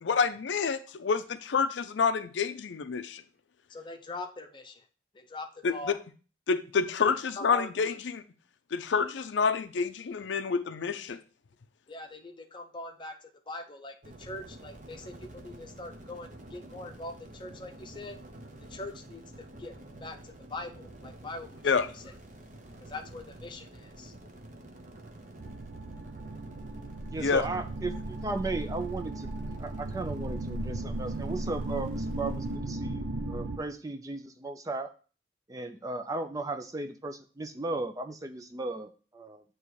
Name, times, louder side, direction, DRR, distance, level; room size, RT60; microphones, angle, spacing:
voice 1, 0.0-3.2 5.6-5.7 6.5-8.2 8.7-11.2 21.6-21.9 27.2-27.4, left 5 dB, 70° left, 0.5 m, -28 dB
voice 2, 3.7-4.8 5.1-6.0 7.0-7.7 11.9-18.2 18.7-22.0 22.8-24.1, left 2 dB, 25° left, 0.7 m, -42 dB
sound 1, 14.0-32.6, right 1 dB, 40° right, 0.9 m, -49 dB
sound 2, 25.4-33.6, right 2 dB, 70° right, 0.6 m, -36 dB
voice 3, 27.1-29.3 29.6-34.9 35.5-39.4, right 2 dB, 20° right, 0.3 m, -36 dB
8.3 x 3.0 x 4.6 m
head